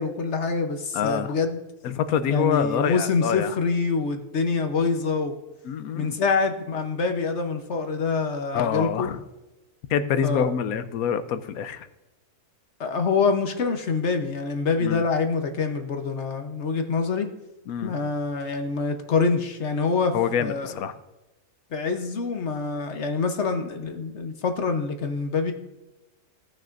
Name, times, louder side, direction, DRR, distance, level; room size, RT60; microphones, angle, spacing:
voice 1, 0.0-1.6 2.3-5.4 6.0-9.1 10.2-10.5 12.8-17.3 17.8-20.8 21.7-25.5, left 4 dB, 55° left, 6 dB, 1.1 m, -26 dB
voice 2, 0.9-1.4 1.8-3.5 5.6-6.2 8.5-9.2 9.9-11.9 14.8-15.0 17.7-17.9 20.1-20.9, left 8 dB, 80° left, 12 dB, 1.1 m, -26 dB
17.0 x 6.3 x 2.5 m, 1.0 s
omnidirectional pair, 1.5 m